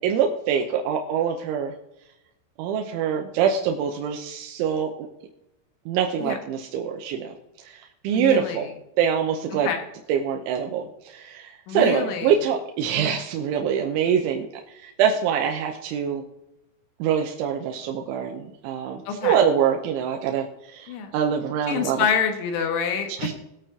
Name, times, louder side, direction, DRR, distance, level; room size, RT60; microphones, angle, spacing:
voice 1, 0.0-1.7 2.6-5.1 5.9-7.3 7.6-8.7 9.0-9.7 10.1-14.5 14.8-16.2 17.0-22.1 23.2-23.4, right 8 dB, 90° right, 3 dB, 3.4 m, -24 dB
voice 2, 8.1-8.6 9.6-9.8 11.7-12.3 13.0-13.1 19.1-19.4 20.9-21.2 21.7-23.1, left 7 dB, 90° left, 5 dB, 4.0 m, -26 dB
21.0 x 8.5 x 2.9 m, 0.89 s
omnidirectional pair, 5.3 m